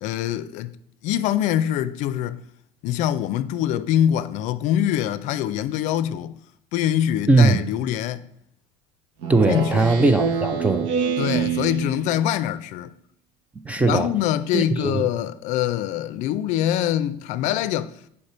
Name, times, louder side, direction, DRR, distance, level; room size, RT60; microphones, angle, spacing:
voice 1, 0.0-0.7 1.0-2.4 2.8-6.4 6.7-8.2 9.5-9.9 11.2-12.9 13.8-17.9, left 11 dB, 55° left, 0.5 m, -24 dB
voice 2, 7.3-7.6 9.3-10.9 13.6-14.1 14.5-15.1, right 3 dB, 10° right, 0.3 m, -19 dB
Speech synthesizer, 9.2-12.3, right 6 dB, 90° right, 1.2 m, -26 dB
8.0 x 5.6 x 4.3 m
cardioid pair, 165°, 15 cm